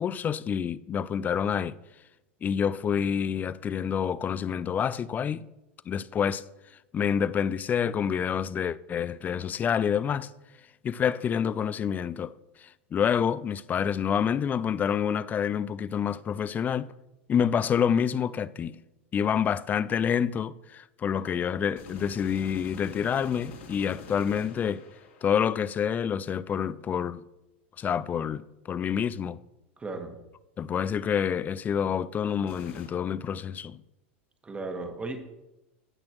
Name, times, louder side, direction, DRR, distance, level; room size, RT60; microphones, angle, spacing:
voice 1, 0.0-1.8 2.4-5.5 5.9-6.4 6.9-10.3 10.8-16.9 17.3-18.8 19.1-24.8 25.2-27.2 27.8-29.4 30.6-33.8, left 8 dB, 25° left, 0.4 m, -28 dB
sound 1, 21.8-25.8 32.5-32.9, left 5 dB, 75° left, 3.0 m, -46 dB
voice 2, 29.8-30.2 34.4-35.2, right 3 dB, 15° right, 1.5 m, -35 dB
17.0 x 6.1 x 3.1 m
hypercardioid pair, 100°, 6 cm